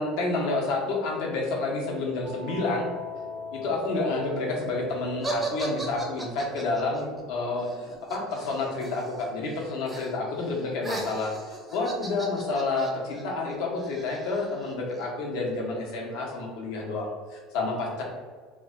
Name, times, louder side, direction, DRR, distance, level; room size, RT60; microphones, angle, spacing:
voice 1, 0.0-2.9 3.5-18.0, left 3 dB, 70° left, 0 dB, 0.8 m, -29 dB
sound 1, 2.2-8.7, equal, 80° right, 0.6 m, -40 dB
sound 2, 5.2-9.2 9.5-10.1 10.4-15.1, right 2 dB, 10° right, 0.4 m, -37 dB
2.9 x 2.2 x 3.5 m, 1.5 s
cardioid pair, 155°, 0 cm